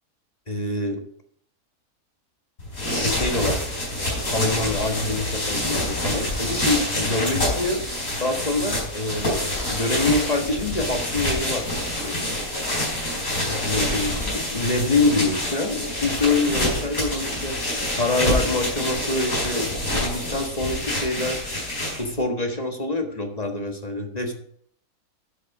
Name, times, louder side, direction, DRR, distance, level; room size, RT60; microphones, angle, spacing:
voice 1, 0.5-1.0 2.9-3.6 3.9-7.8 8.2-11.7 12.0-12.3 13.4-17.6 17.9-21.4 22.0-24.3, left 2 dB, 25° left, 3 dB, 1.5 m, -26 dB
sound 1, 2.6-22.2, left 1 dB, 65° left, 5.2 m, -27 dB
11.5 x 6.4 x 4.9 m, 0.64 s
omnidirectional pair, 1.6 m